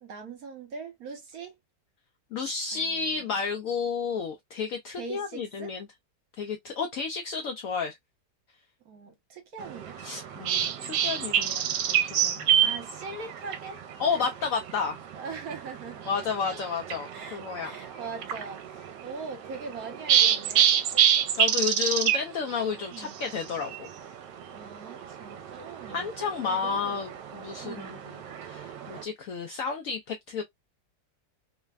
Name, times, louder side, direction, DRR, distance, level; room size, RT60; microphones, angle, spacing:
voice 1, 0.0-1.6 2.7-3.5 5.0-5.7 8.8-10.0 12.6-13.8 15.1-16.6 17.1-20.7 22.9-23.2 24.5-26.1 26.4-27.0 27.6-28.0, right 4 dB, 60° right, 1.3 m, -41 dB
voice 2, 2.3-5.9 6.4-7.9 10.0-12.7 14.0-15.0 16.1-17.7 21.4-23.9 25.9-28.2 28.4-30.4, left 5 dB, 75° left, 0.7 m, -31 dB
sound 1, 9.6-29.0, right 9 dB, 80° right, 1.2 m, -29 dB
3.2 x 2.1 x 2.3 m
omnidirectional pair, 1.9 m